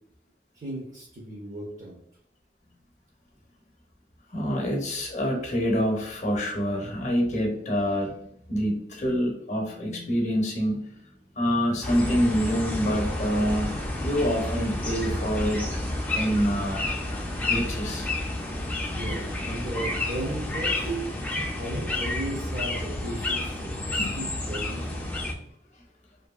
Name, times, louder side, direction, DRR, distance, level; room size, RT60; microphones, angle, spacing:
voice 1, 0.5-2.0 18.9-20.9 21.6-25.1, right 1 dB, 45° right, -3 dB, 0.6 m, -36 dB
voice 2, 4.3-8.1 8.5-15.6 16.1-16.8 17.4-18.1 19.1-19.2 20.8-21.0 21.3-21.4 21.7-21.8, equal, 40° left, 0 dB, 0.7 m, -26 dB
sound 1, 11.8-25.3, left 2 dB, 10° left, 0.4 m, -30 dB
2.7 x 2.6 x 2.3 m, 0.72 s
head